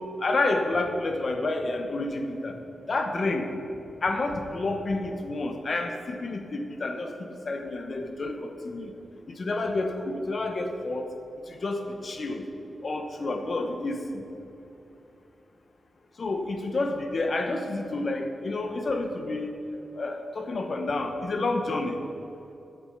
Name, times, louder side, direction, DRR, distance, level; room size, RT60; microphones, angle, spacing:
voice 1, 0.0-2.6 2.9-3.5 4.0-7.2 7.5-8.9 9.3-11.1 11.5-12.4 12.8-14.0 16.2-19.5 19.9-22.0, left 2 dB, 50° left, 5 dB, 1.0 m, -29 dB
8.0 x 7.4 x 5.7 m, 2.9 s
cardioid pair, 80°, 0 cm